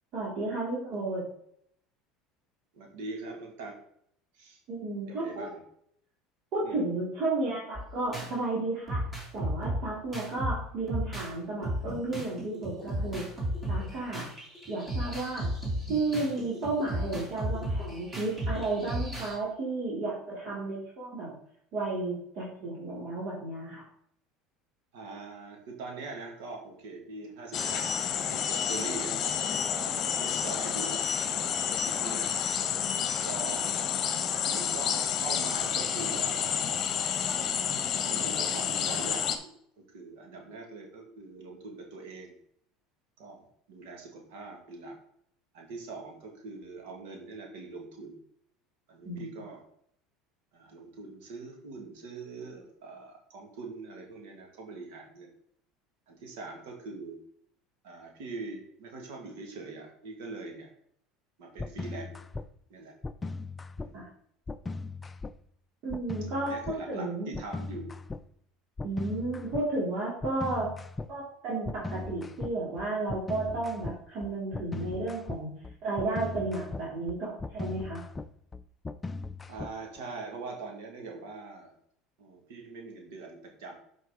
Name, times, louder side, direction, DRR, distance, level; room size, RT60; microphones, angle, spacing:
voice 1, 0.1-1.2 4.7-5.5 6.5-9.0 9.3-13.3 13.7-14.3 14.7-15.5 15.9-21.4 21.7-23.8 49.0-49.2 63.9-64.1 65.8-66.6 66.9-67.3 68.8-70.7 71.1-75.5 75.8-78.1, right 2 dB, 60° right, -6 dB, 3.2 m, -33 dB
voice 2, 2.7-3.8 4.3-4.6 5.1-5.6 6.6-6.8 24.9-32.4 33.2-33.8 34.4-36.7 37.3-39.5 39.8-42.3 43.2-44.9 45.5-48.2 48.9-49.6 50.5-55.3 56.1-57.2 57.8-60.7 61.4-62.2 62.7-62.9 63.8-64.0 66.4-67.9 79.5-81.7 82.2-83.7, right 3 dB, 80° right, 1 dB, 2.0 m, -43 dB
sound 1, 7.8-8.3 8.9-11.3 11.6-19.4, equal, 20° right, 3.1 m, -34 dB
sound 2, 27.5-39.4, left 8 dB, 40° left, 0.9 m, -30 dB
sound 3, 61.6-62.4 63.0-63.9 64.5-65.3 65.9-66.8 67.3-68.2 68.8-69.7 70.2-71.1 71.6-80.0, left 3 dB, 20° left, 0.4 m, -38 dB
8.1 x 5.3 x 3.8 m, 0.69 s
supercardioid pair, 115°, 0 cm